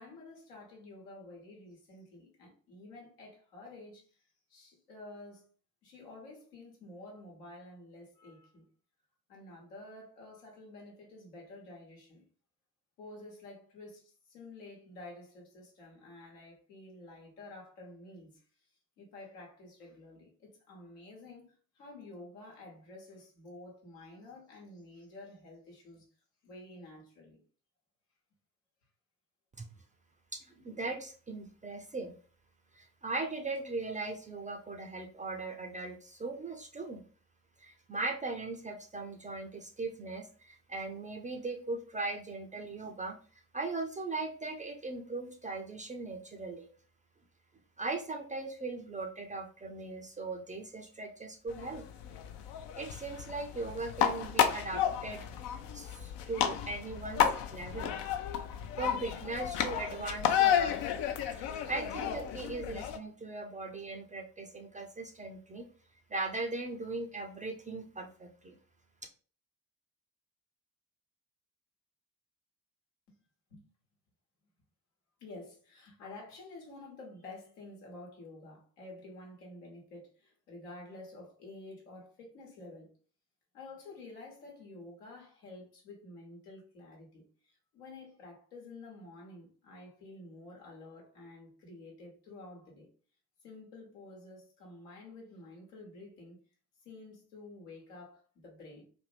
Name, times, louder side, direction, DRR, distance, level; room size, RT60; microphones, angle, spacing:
voice 1, 0.0-5.5 5.8-8.7 9.3-12.2 13.0-18.4 19.0-26.1 26.4-27.4 73.1-73.2 73.5-73.6 75.2-83.0 83.5-92.9 93.4-96.4 96.8-98.8, left 2 dB, 75° left, 1.1 m, -50 dB
voice 2, 30.3-32.1 32.7-37.0 37.6-43.2 43.5-46.7 47.8-51.9 52.8-55.2 55.7-57.9 58.8-60.8 61.4-65.7 66.1-68.6, right 3 dB, 15° right, 0.4 m, -39 dB
sound 1, 51.5-63.0, left 9 dB, 60° left, 0.6 m, -32 dB
2.6 x 2.5 x 3.2 m
figure-of-eight pair, 45°, 47 cm